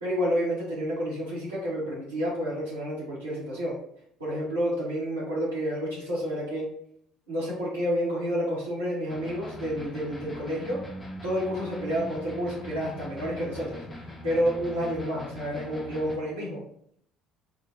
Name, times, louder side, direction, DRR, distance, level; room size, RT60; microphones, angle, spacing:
voice 1, 0.0-3.8 4.2-6.7 7.3-10.8 11.2-16.6, equal, 85° right, -10 dB, 1.5 m, -30 dB
sound 1, 9.1-16.2, left 1 dB, 20° left, 0.9 m, -41 dB
5.2 x 2.5 x 2.8 m, 0.69 s
figure-of-eight pair, 55°, 0 cm